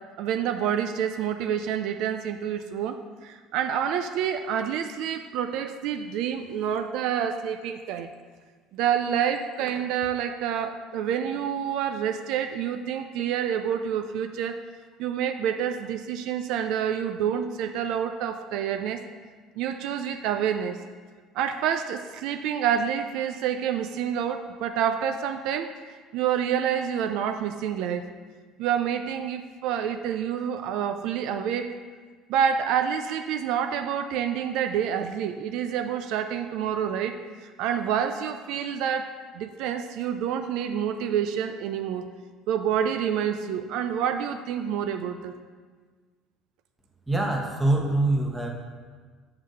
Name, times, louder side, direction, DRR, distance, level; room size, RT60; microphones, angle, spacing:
voice 1, 0.2-8.1 8.7-14.6 15.0-19.0 19.6-20.8 21.3-28.1 28.6-31.7 32.3-39.1 39.3-42.0 42.5-45.3, right 8 dB, 70° right, 7 dB, 0.4 m, -28 dB
voice 2, 47.1-48.5, right 2 dB, 10° right, 0 dB, 1.1 m, -24 dB
7.2 x 3.9 x 6.4 m, 1.5 s
cardioid pair, 130°, 0 cm